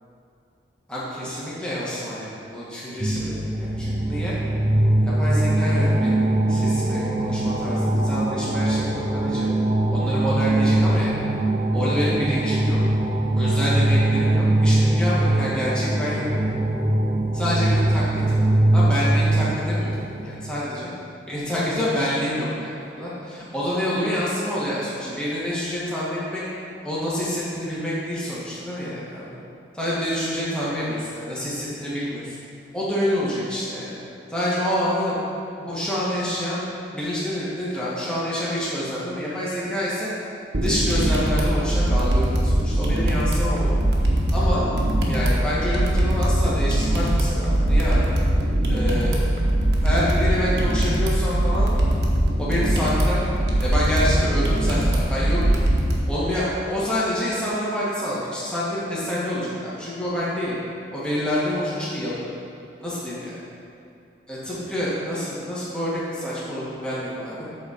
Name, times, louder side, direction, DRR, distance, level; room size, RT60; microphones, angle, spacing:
voice 1, 0.9-4.3 5.0-6.2 6.5-9.5 9.9-11.1 11.7-12.8 13.3-16.2 17.3-18.4 18.7-19.9 20.2-20.9 21.3-26.4 26.8-29.4 29.7-32.4 32.7-34.0 34.3-35.2 35.6-40.1 40.6-43.7 44.3-44.6 45.1-48.2 48.7-49.3 49.8-51.7 52.4-53.2 53.6-55.6 56.1-60.6 60.9-62.3 62.8-63.4 64.3-67.5, equal, 5° left, -9 dB, 1.7 m, -27 dB
sound 1, 3.0-20.4, right 1 dB, 25° right, 0.8 m, -21 dB
sound 2, 40.5-56.0, right 1 dB, 70° right, 1.2 m, -21 dB
8.5 x 4.1 x 6.5 m, 2.6 s
head